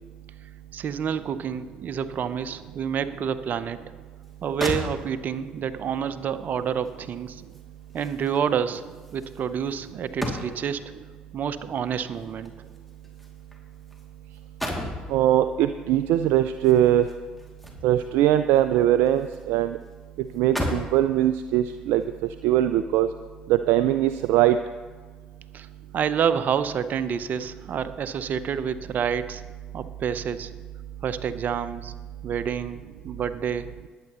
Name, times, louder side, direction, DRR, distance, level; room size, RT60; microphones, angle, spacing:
voice 1, 0.7-3.8 4.4-7.4 7.9-8.8 9.1-10.8 11.3-12.5 25.5-25.7 25.9-29.4 29.7-30.5 31.0-31.9 32.2-33.7, right 7 dB, 50° right, 12 dB, 0.8 m, -28 dB
sound 1, 4.2-4.3 4.6-5.4 6.9-10.8 11.9-14.1 14.3-15.1 16.6-18.1 18.5-19.5 19.8-19.9 20.3-21.0 21.7-21.9, left 1 dB, ahead, 2.6 m, -35 dB
voice 2, 15.1-17.1 17.8-19.8 20.3-22.0 22.4-23.1 23.5-24.6, right 12 dB, 65° right, 11 dB, 0.4 m, -21 dB
21.0 x 9.0 x 3.0 m, 1.4 s
hypercardioid pair, 55°, 4 cm